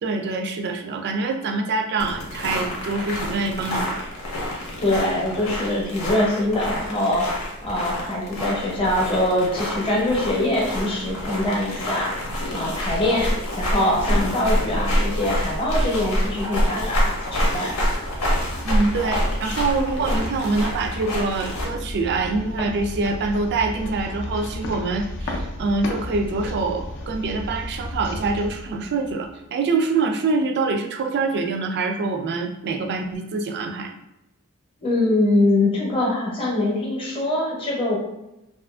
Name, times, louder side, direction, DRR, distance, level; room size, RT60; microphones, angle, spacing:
voice 1, 0.0-4.1 18.6-34.0, right 3 dB, 50° right, 4 dB, 0.3 m, -25 dB
sound 1, 2.0-21.7, equal, 90° left, 0.8 m, -27 dB
voice 2, 4.8-7.2 7.6-12.1 12.5-17.7 34.8-38.0, left 1 dB, 25° left, -4 dB, 0.7 m, -23 dB
sound 2, 17.7-29.4, left 1 dB, 55° left, 0.4 m, -34 dB
2.6 x 2.4 x 2.3 m, 0.90 s
head